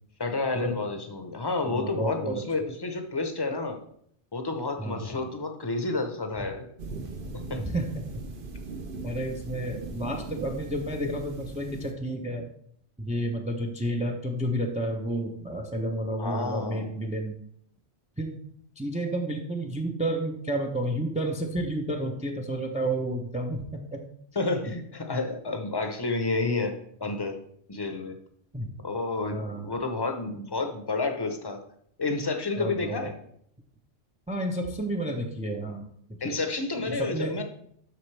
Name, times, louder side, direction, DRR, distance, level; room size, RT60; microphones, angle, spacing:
voice 1, 0.2-3.8 4.3-6.7 7.5-7.6 16.2-17.0 24.3-26.7 27.0-27.4 27.7-28.2 28.8-31.6 32.0-33.1 36.2-37.4, left 3 dB, 25° left, 5 dB, 0.8 m, -30 dB
voice 2, 1.6-2.4 4.8-5.1 7.5-8.0 9.0-12.5 13.0-17.3 18.2-18.4 18.8-23.8 28.5-28.7 29.2-29.7 32.6-33.1 34.3-35.9 36.2-36.4 36.9-37.4, right 1 dB, 10° right, 2 dB, 0.6 m, -31 dB
sound 1, 6.8-11.9, right 3 dB, 50° right, 0.9 m, -39 dB
12.0 x 4.1 x 3.3 m, 0.66 s
omnidirectional pair, 1.2 m